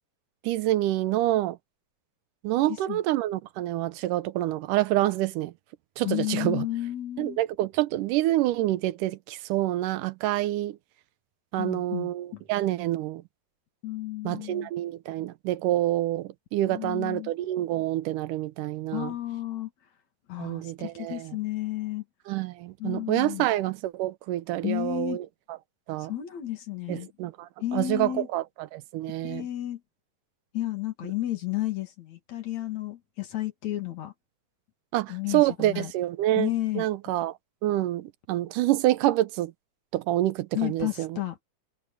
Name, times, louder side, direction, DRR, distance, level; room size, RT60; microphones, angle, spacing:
voice 1, 0.4-1.6 2.4-5.5 6.0-6.7 7.2-10.8 11.5-13.2 14.2-19.1 20.4-21.4 22.3-25.3 25.9-26.1 26.9-29.5 34.9-37.3 37.6-39.5 39.9-41.2, right 15 dB, 85° right, 2.4 m, -27 dB
voice 2, 2.7-3.0 6.0-7.4 11.6-12.4 13.8-14.7 16.7-17.3 18.9-19.7 20.3-22.0 22.8-23.5 24.6-25.2 26.0-27.1 27.6-28.3 29.2-29.8 30.5-34.1 35.1-35.9 36.4-36.8 40.5-41.4, left 14 dB, 65° left, 3.3 m, -32 dB
omnidirectional pair, 3.6 m